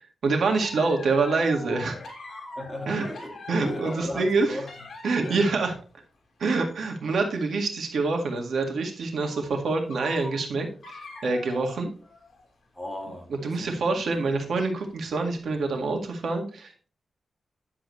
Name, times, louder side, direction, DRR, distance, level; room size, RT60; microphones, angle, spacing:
voice 1, 0.0-2.0 2.9-3.0 3.5-4.6 5.0-5.7 6.4-11.9 13.4-16.9, right 3 dB, 80° right, 1.9 m, -26 dB
sound 1, 0.6-5.8 6.5-7.0 7.5-7.6 8.1-8.2 9.2-9.5 9.9-12.6 13.0-13.1 14.1-14.4 15.2-15.4 15.8-15.9, left 2 dB, 60° left, 2.6 m, -43 dB
voice 2, 2.5-4.7 5.2-5.4 12.7-14.6, left 1 dB, 10° left, 2.5 m, -37 dB
10.0 x 7.7 x 3.2 m
wide cardioid pair, 135°, 0 cm